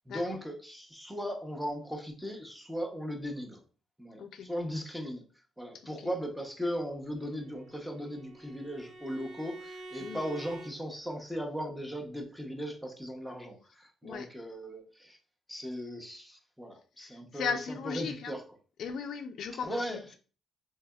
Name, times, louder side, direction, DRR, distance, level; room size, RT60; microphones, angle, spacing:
voice 1, 0.1-3.6 4.0-5.2 5.6-15.2 15.5-18.4 19.6-20.2, equal, ahead, 0.7 m, -38 dB
voice 2, 4.2-4.5 5.7-6.1 10.0-10.2 14.0-14.3 17.0-18.4 18.8-20.2, left 6 dB, 70° left, 0.3 m, -37 dB
Bowed string instrument, 7.2-10.7, right 2 dB, 60° right, 0.9 m, -48 dB
3.4 x 2.8 x 2.3 m
cardioid pair, 90°, 0 cm